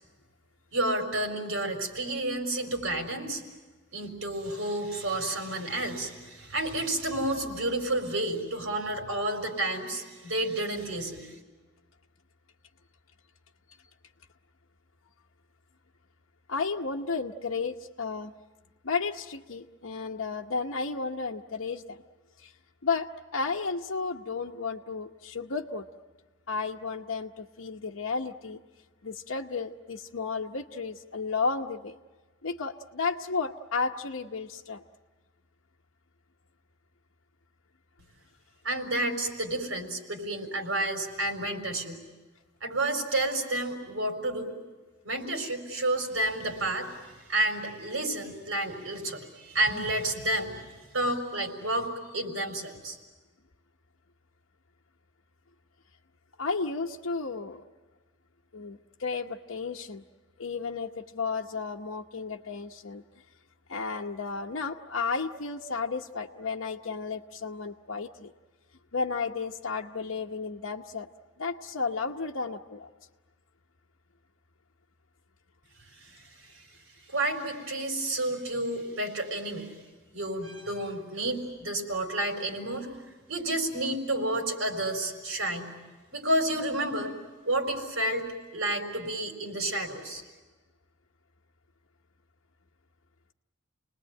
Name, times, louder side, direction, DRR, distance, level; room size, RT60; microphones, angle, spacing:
voice 1, 0.7-3.4 3.9-11.3 38.6-42.0 42.6-44.5 45.0-46.9 47.3-50.6 50.9-51.9 52.1-53.0 76.0-76.6 77.1-79.7 80.1-82.9 83.3-85.7 86.1-87.1 87.4-88.2 88.5-90.2, right 1 dB, 85° right, 4 dB, 4.4 m, -30 dB
voice 2, 16.5-18.3 18.8-22.0 22.4-22.5 22.8-25.9 26.5-28.6 29.0-32.0 32.4-34.8 49.7-49.9 56.4-57.6 58.5-60.0 60.4-63.0 63.7-68.3 68.9-71.1 71.4-72.9, left 4 dB, 85° left, 1 dB, 0.9 m, -33 dB
29.0 x 20.0 x 9.0 m, 1.3 s
head